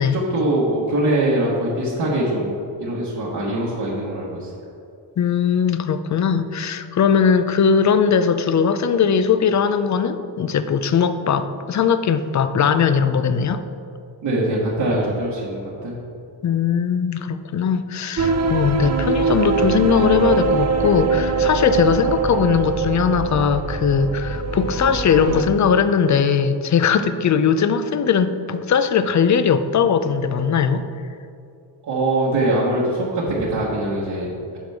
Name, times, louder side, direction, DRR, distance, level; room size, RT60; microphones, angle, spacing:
voice 1, 0.1-2.5 2.8-4.5 14.2-15.9 31.8-34.6, right 1 dB, 60° right, -7 dB, 1.6 m, -22 dB
voice 2, 5.2-13.6 16.4-30.8, left 6 dB, 40° left, 11 dB, 0.5 m, -19 dB
sound 1, 18.2-25.4, right 4 dB, 35° right, 0.7 m, -22 dB
10.0 x 5.9 x 3.5 m, 2.6 s
cardioid pair, 90°, 46 cm